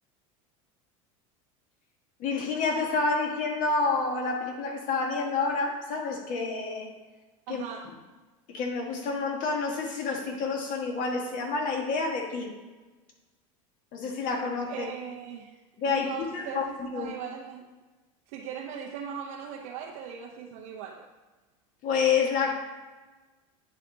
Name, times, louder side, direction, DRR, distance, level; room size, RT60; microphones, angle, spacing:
voice 1, 2.2-6.9 7.5-7.9 8.5-12.5 13.9-14.9 15.8-17.1 21.8-22.7, left 4 dB, 50° left, 2 dB, 1.5 m, -29 dB
voice 2, 7.5-7.9 14.7-15.6 15.8-17.7 18.3-21.0, right 7 dB, 65° right, -2 dB, 0.9 m, -39 dB
9.7 x 3.3 x 3.9 m, 1.2 s
hypercardioid pair, 90°, 17 cm